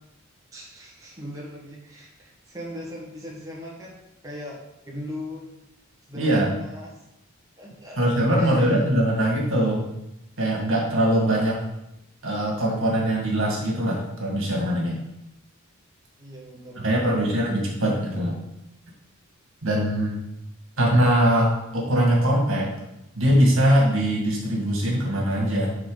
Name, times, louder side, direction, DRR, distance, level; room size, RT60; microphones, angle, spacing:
voice 1, 0.5-5.4 6.1-6.9 7.6-8.0 8.4-8.8 16.2-17.2, left 1 dB, 15° right, -5 dB, 1.5 m, -39 dB
voice 2, 6.2-6.5 8.0-9.9 10.4-11.6 12.2-15.0 16.8-18.4 19.6-20.2 20.8-22.7 23.2-25.7, right 1 dB, 65° right, -2 dB, 2.1 m, -22 dB
9.6 x 3.9 x 4.0 m, 0.87 s
head